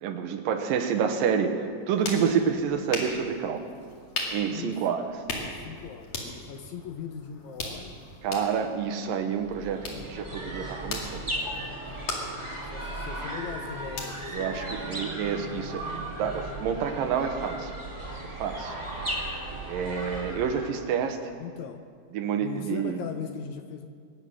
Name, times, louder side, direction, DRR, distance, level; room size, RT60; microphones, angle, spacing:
voice 1, 0.0-3.6 4.3-5.0 8.2-11.3 14.3-17.7 18.4-18.8 19.7-21.2 22.1-23.0, right 7 dB, 85° right, 6 dB, 2.8 m, -28 dB
sound 1, 1.6-15.3, left 2 dB, 50° left, 3.2 m, -39 dB
voice 2, 4.5-4.8 5.4-8.0 12.7-15.0 21.4-21.8 22.4-23.9, left 7 dB, 75° left, 6 dB, 1.9 m, -39 dB
sound 2, 9.4-20.9, right 1 dB, 10° right, 1.5 m, -36 dB
22.5 x 9.8 x 6.3 m, 2.1 s
omnidirectional pair, 3.9 m